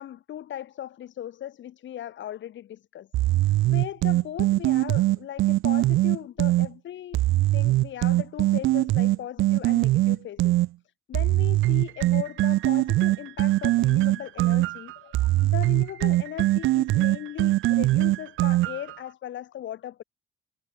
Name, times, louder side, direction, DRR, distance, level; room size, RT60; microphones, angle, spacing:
voice 1, 0.0-3.1 3.4-7.2 7.5-10.6 11.1-14.9 15.4-20.0, left 11 dB, 70° left, 2.1 m, -38 dB
sound 1, 3.1-6.7 7.1-10.7 11.1-18.9, right 16 dB, 85° right, 0.9 m, -22 dB
cardioid pair, 90°, 20 cm